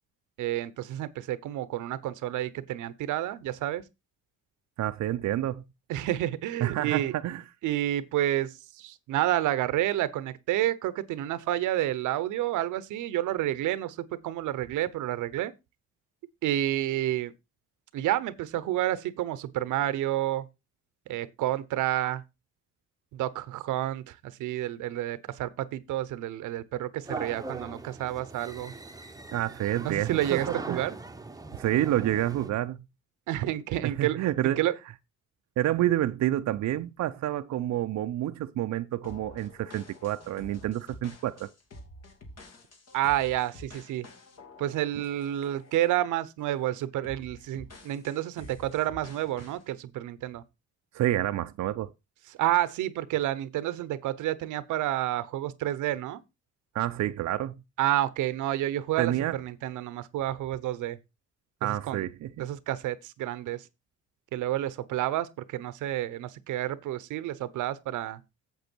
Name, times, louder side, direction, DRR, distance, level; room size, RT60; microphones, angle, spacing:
voice 1, 0.4-3.8 5.9-7.2 7.6-15.5 16.4-17.3 17.9-20.5 21.1-22.2 23.1-28.7 29.8-31.0 33.3-34.2 34.4-34.7 42.9-44.1 44.6-50.4 52.3-56.2 57.8-61.0 61.6-62.1 62.4-63.7 64.3-68.2, right 13 dB, 85° right, 0.9 m, -30 dB
voice 2, 4.8-5.6 6.6-7.4 29.3-30.4 30.7-30.8 31.6-32.8 33.8-34.6 35.6-41.5 50.9-51.9 56.7-57.5 59.0-59.3 61.6-62.3, right 13 dB, 65° right, 0.6 m, -28 dB
sound 1, 27.1-32.5, right 3 dB, 10° right, 0.9 m, -40 dB
sound 2, 39.0-46.0 46.4-46.6 47.0-49.6, left 1 dB, 55° left, 2.7 m, -49 dB
8.1 x 7.6 x 4.5 m
cardioid pair, 90°, 30 cm